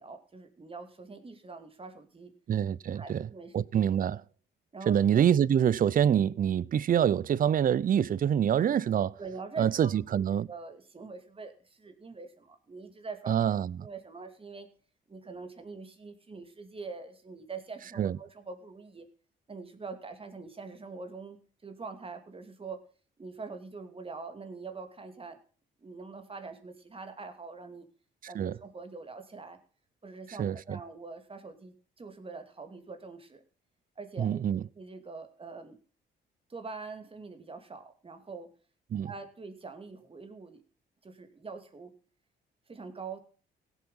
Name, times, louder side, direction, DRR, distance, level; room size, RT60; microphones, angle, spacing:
voice 1, 0.0-2.3 2.9-3.6 4.7-5.0 9.2-10.2 10.5-13.3 13.8-14.7 15.1-19.1 19.5-22.8 23.2-25.4 25.8-27.9 28.3-29.6 30.0-33.4 34.0-35.8 36.5-38.5 39.0-40.6 41.0-41.9 42.7-43.2, right 4 dB, 30° right, 2.6 m, -44 dB
voice 2, 2.5-3.3 3.5-4.2 4.9-9.2 9.6-10.5 13.3-13.9 18.0-18.2 28.3-28.5 30.4-30.8 34.2-34.6 38.9-39.1, right 9 dB, 45° right, 0.6 m, -26 dB
17.0 x 8.1 x 5.6 m
cardioid pair, 90°, 20 cm